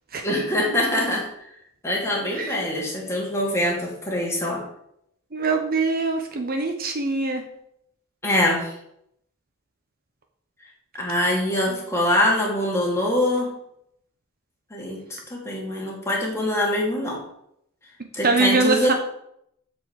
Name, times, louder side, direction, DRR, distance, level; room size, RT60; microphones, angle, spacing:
voice 1, 0.2-1.3 1.8-4.6 8.2-8.7 11.0-13.5 14.7-17.2 18.1-18.9, left 1 dB, 15° left, -3 dB, 2.9 m, -24 dB
voice 2, 5.3-7.4 11.7-11.8 18.2-18.9, right 3 dB, 45° right, 4 dB, 1.1 m, -23 dB
8.3 x 5.3 x 7.6 m, 0.74 s
head